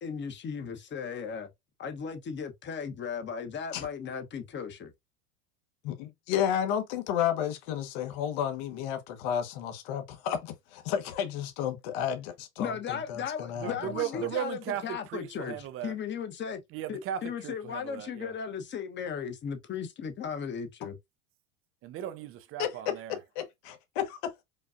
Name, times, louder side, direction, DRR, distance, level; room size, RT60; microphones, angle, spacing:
voice 1, 0.0-1.5 1.8-4.9 12.6-15.6 15.8-16.6 16.9-21.0, left 7 dB, 25° left, 0.9 m, -36 dB
voice 2, 5.8-14.3 22.6-22.7 23.4-24.4, left 9 dB, 60° left, 1.1 m, -32 dB
voice 3, 13.6-15.9 16.7-18.3 21.8-23.2, right 10 dB, 30° right, 0.4 m, -36 dB
5.2 x 2.3 x 2.4 m
supercardioid pair, 115°, 43 cm